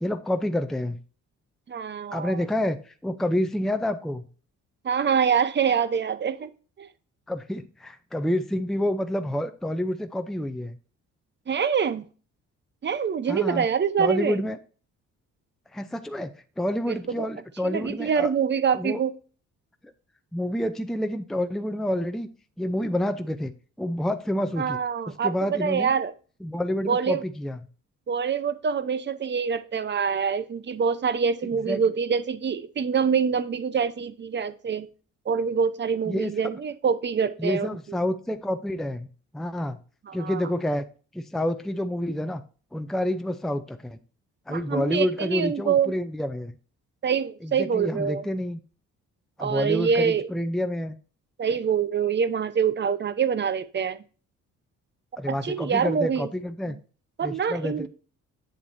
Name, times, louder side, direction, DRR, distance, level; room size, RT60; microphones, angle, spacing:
voice 1, 0.0-1.0 2.1-4.3 7.3-10.8 13.3-13.7 14.0-14.6 15.7-18.3 18.7-19.0 20.3-22.3 22.6-23.5 23.8-24.8 25.1-25.9 26.4-27.6 31.7-31.8 36.1-36.3 37.4-39.1 39.3-39.8 40.1-40.9 41.1-42.4 42.7-44.0 44.5-46.5 47.4-48.6 49.4-51.0 55.2-56.8 57.2-57.9, left 1 dB, ahead, 8 dB, 0.6 m, -28 dB
voice 2, 1.7-2.4 4.8-6.5 6.8-6.9 11.5-12.1 12.8-14.4 16.9-17.3 17.7-19.1 24.6-26.1 26.9-27.2 28.1-34.9 35.3-37.7 40.1-40.4 44.5-45.9 47.0-48.2 49.4-50.3 51.4-54.0 55.3-56.3 57.2-57.9, right 6 dB, 35° right, 14 dB, 0.8 m, -25 dB
8.2 x 7.2 x 2.7 m, 0.38 s
cardioid pair, 90°, 30 cm